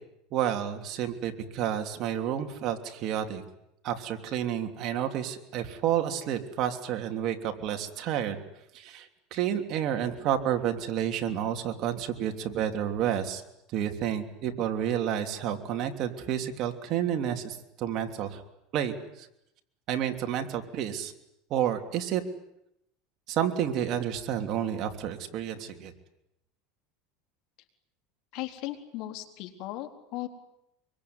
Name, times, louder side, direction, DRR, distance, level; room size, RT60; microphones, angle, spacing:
voice 1, 0.3-3.4 3.8-8.4 8.7-13.4 13.7-18.4 18.7-19.3 19.9-21.1 21.5-22.2 23.3-25.9, right 10 dB, 45° right, 5 dB, 3.2 m, -30 dB
voice 2, 28.3-30.3, left 15 dB, 60° left, 6 dB, 3.9 m, -37 dB
25.5 x 24.0 x 9.7 m, 0.83 s
supercardioid pair, 140°, 0 cm